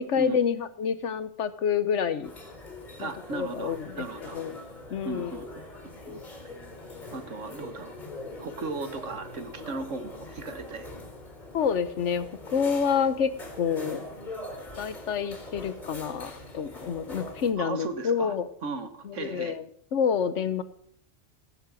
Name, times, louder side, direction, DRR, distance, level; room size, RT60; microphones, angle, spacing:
voice 1, 0.0-2.3 3.0-4.6 4.9-5.3 11.5-13.3 13.6-14.0 14.8-18.5 19.0-19.6 19.9-20.6, left 7 dB, 75° left, 13 dB, 1.2 m, -28 dB
sound 1, 2.2-17.5, left 2 dB, 40° left, 4.0 m, -42 dB
voice 2, 3.0-4.4 5.0-5.5 6.1-6.2 7.1-7.9 8.4-10.9 17.6-18.3 18.6-19.6, right 3 dB, 85° right, 9 dB, 1.7 m, -36 dB
17.0 x 7.5 x 6.3 m, 0.64 s
omnidirectional pair, 1.2 m